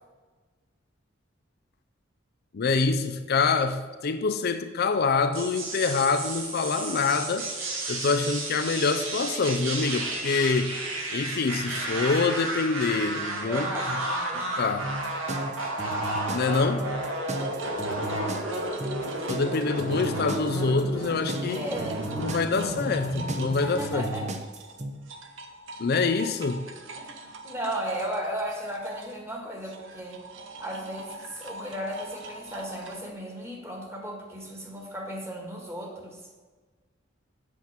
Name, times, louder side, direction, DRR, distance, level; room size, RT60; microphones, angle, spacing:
voice 1, 2.5-10.8 11.1-14.0 14.3-14.9 16.3-16.9 19.3-21.6 22.2-24.1 25.8-26.7, left 4 dB, 50° left, 9 dB, 0.5 m, -26 dB
sound 1, 5.3-23.8, right 1 dB, 85° right, 2.3 m, -32 dB
voice 2, 13.4-14.6 19.8-20.4 21.4-22.1 23.4-24.3 27.0-30.2 30.6-36.2, equal, 15° right, 1 dB, 1.8 m, -35 dB
sound 2, 14.8-24.9, right 1 dB, 35° right, 0.9 m, -35 dB
sound 3, 17.3-20.7 21.0-33.1, right 2 dB, 65° right, 0.9 m, -43 dB
8.0 x 5.9 x 7.5 m, 1.4 s
head